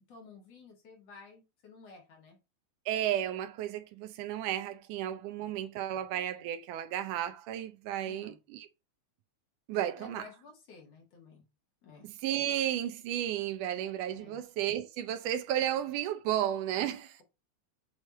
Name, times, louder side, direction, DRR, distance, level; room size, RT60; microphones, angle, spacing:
voice 1, 0.1-2.4 5.4-5.6 8.0-8.4 10.0-11.4 11.8-12.1 14.1-14.4, left 4 dB, 55° left, 2.8 m, -53 dB
voice 2, 2.9-8.7 9.7-10.3 12.0-17.2, right 11 dB, 85° right, 2.3 m, -33 dB
8.1 x 3.3 x 4.3 m
omnidirectional pair, 3.5 m